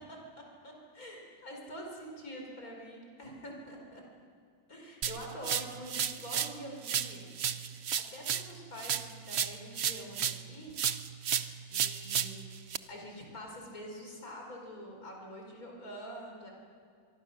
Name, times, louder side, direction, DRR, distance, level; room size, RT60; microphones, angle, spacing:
voice 1, 0.6-4.0 4.7-7.2 8.1-10.7 11.7-16.5, equal, 90° left, 0 dB, 5.1 m, -45 dB
sound 1, 5.0-6.6 6.8-10.5 10.8-12.8, right 8 dB, 55° right, 0.9 m, -33 dB
25.0 x 23.5 x 6.4 m, 2.3 s
omnidirectional pair, 1.5 m